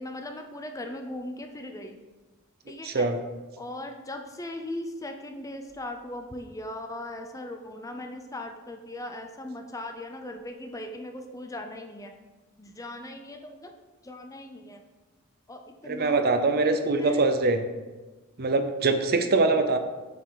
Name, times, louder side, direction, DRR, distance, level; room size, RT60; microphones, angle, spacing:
voice 1, 0.0-2.0 2.7-3.1 3.6-12.1 12.6-13.7 14.0-14.8 15.5-17.2 19.2-19.5, left 1 dB, 15° left, 5 dB, 0.5 m, -39 dB
voice 2, 2.8-3.2 15.9-17.6 18.4-19.8, right 3 dB, 45° right, 8 dB, 0.6 m, -23 dB
7.2 x 5.3 x 4.7 m, 1.2 s
head